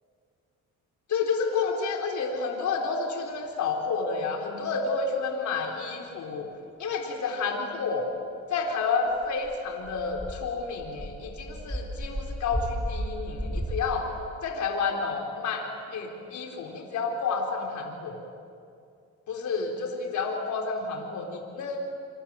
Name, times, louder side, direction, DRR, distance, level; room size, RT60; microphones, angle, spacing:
voice 1, 1.1-6.5 6.8-8.1 8.5-14.1 14.4-15.6 15.9-18.2 19.3-21.8, left 4 dB, 70° left, 1 dB, 4.2 m, -30 dB
sound 1, 9.1-13.9, equal, 5° right, 3.9 m, -34 dB
28.0 x 22.5 x 9.0 m, 2.5 s
cardioid pair, 90°, 30 cm